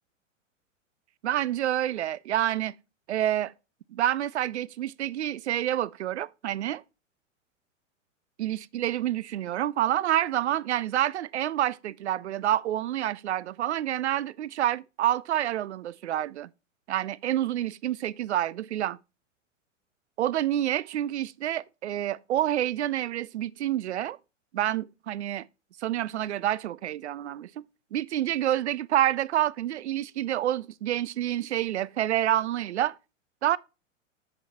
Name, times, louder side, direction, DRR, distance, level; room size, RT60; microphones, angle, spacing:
voice 1, 1.2-2.7 3.1-3.5 3.9-6.8 8.4-16.5 16.9-19.0 20.2-24.2 24.5-25.4 25.8-27.5 27.9-33.0 33.4-33.6, right 12 dB, 60° right, 0.5 m, -28 dB
7.9 x 5.4 x 4.3 m
figure-of-eight pair, 100°, 39 cm